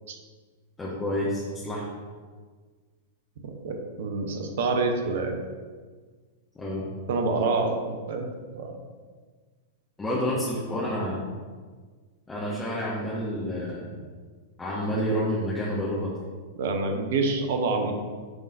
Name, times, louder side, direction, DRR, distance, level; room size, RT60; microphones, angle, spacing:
voice 1, 0.8-1.9 6.5-6.9 10.0-11.2 12.3-13.9 14.6-16.1, equal, 15° left, -8 dB, 1.3 m, -29 dB
voice 2, 3.4-5.4 7.1-8.8 16.6-17.9, right 3 dB, 60° right, 4 dB, 0.8 m, -27 dB
9.5 x 3.9 x 2.6 m, 1.5 s
figure-of-eight pair, 100°, 0 cm